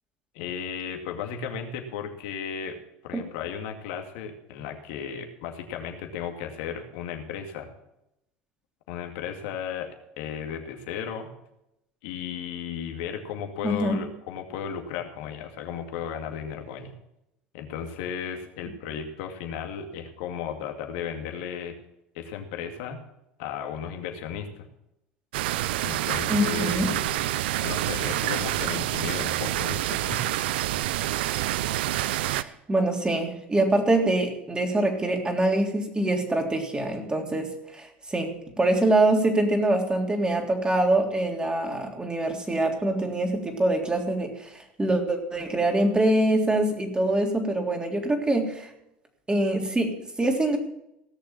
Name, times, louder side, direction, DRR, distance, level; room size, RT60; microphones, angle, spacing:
voice 1, 0.3-2.8 3.0-7.7 8.9-9.9 10.2-11.3 12.0-16.9 17.5-21.8 22.1-23.0 23.4-24.7 25.8-27.2 27.6-30.2, left 7 dB, 70° left, 4 dB, 2.3 m, -35 dB
voice 2, 13.6-14.0 26.3-26.9 32.2-48.7 49.3-50.6, right 1 dB, 15° right, 2 dB, 3.4 m, -24 dB
sound 1, 25.3-32.4, right 14 dB, 80° right, 0.5 m, -27 dB
17.5 x 6.7 x 7.2 m, 0.83 s
hypercardioid pair, 80°, 6 cm